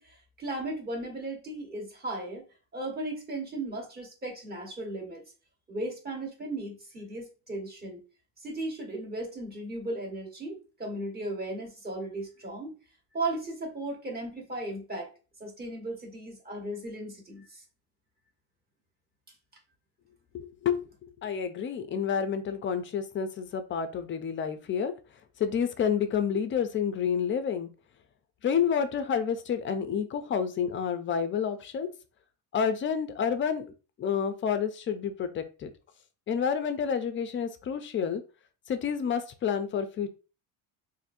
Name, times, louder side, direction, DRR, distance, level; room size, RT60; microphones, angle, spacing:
voice 1, 0.0-2.5 2.7-5.2 5.7-8.0 8.4-12.8 13.1-15.1 15.4-17.6, right 2 dB, 20° right, 0 dB, 1.2 m, -36 dB
voice 2, 20.3-20.9 21.2-24.9 25.4-27.7 28.4-31.9 32.5-33.7 34.0-35.7 36.3-38.2 38.7-40.1, left 7 dB, 30° left, 9 dB, 0.4 m, -29 dB
4.1 x 2.6 x 2.5 m, 0.33 s
cardioid pair, 140°, 43 cm